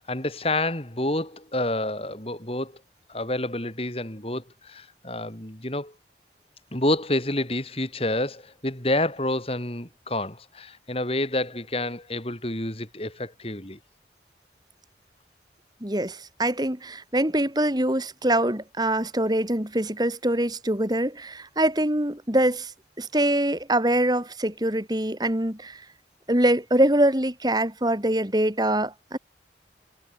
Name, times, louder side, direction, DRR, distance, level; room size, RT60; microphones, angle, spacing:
voice 1, 0.0-2.7 3.1-5.9 6.7-13.8, left 1 dB, 30° left, 4.4 m, -28 dB
voice 2, 15.8-22.7 23.0-25.8 26.3-29.2, right 1 dB, 25° right, 2.7 m, -24 dB
head